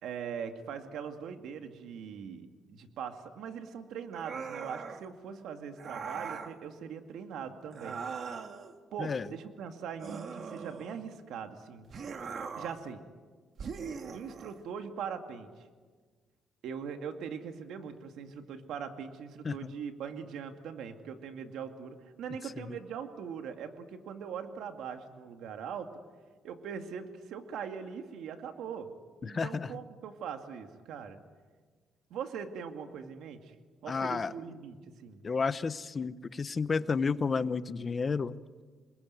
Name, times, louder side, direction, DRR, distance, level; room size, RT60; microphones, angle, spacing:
voice 1, 0.0-8.0 8.9-11.9 12.6-13.0 14.1-15.6 16.6-25.9 26.4-28.9 29.2-31.2 32.1-33.5 33.8-35.2, right 7 dB, 80° right, 6 dB, 2.2 m, -41 dB
sound 1, 4.1-5.1 5.8-6.6 7.7-8.7 10.0-11.1 11.9-12.9 13.6-14.6, right 5 dB, 55° right, 2.1 m, -40 dB
voice 2, 29.2-29.7 33.9-34.3 35.2-38.4, left 5 dB, 35° left, 14 dB, 1.0 m, -31 dB
28.5 x 21.0 x 9.6 m, 1.5 s
cardioid pair, 90°, 0 cm